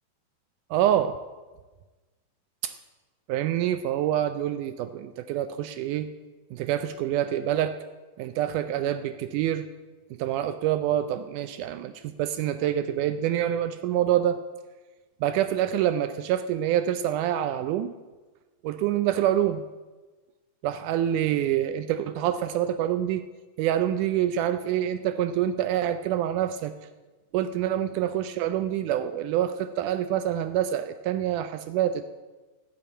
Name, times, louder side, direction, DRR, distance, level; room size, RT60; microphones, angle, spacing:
voice 1, 0.7-1.2 2.6-2.7 3.3-6.1 6.5-7.7 8.2-9.7 10.2-14.4 15.2-17.9 18.6-19.6 20.6-23.2 23.6-26.7 27.3-32.0, right 11 dB, 80° right, 10 dB, 1.9 m, -26 dB
13.5 x 6.8 x 8.4 m, 1.3 s
omnidirectional pair, 3.9 m